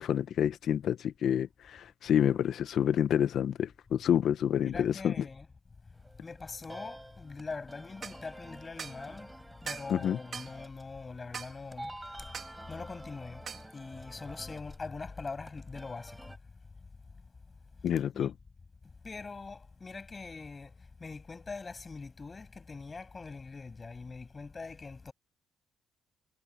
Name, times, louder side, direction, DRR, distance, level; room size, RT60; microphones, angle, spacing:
voice 1, 0.0-5.2 9.9-10.2 17.8-18.3, left 9 dB, 70° left, 1.3 m, -28 dB
voice 2, 4.6-5.5 6.2-9.3 9.6-12.3 12.7-13.5 13.7-16.3 17.9-18.3 19.0-25.1, left 4 dB, 30° left, 7.9 m, -43 dB
sound 1, 5.9-16.4, right 1 dB, 10° right, 7.0 m, -49 dB
sound 2, 8.0-8.2 8.8-9.0 9.7-9.9 10.3-10.5 11.3-11.5 12.3-12.6 13.5-13.7, right 6 dB, 50° right, 3.8 m, -41 dB
cardioid pair, 90°, 0 cm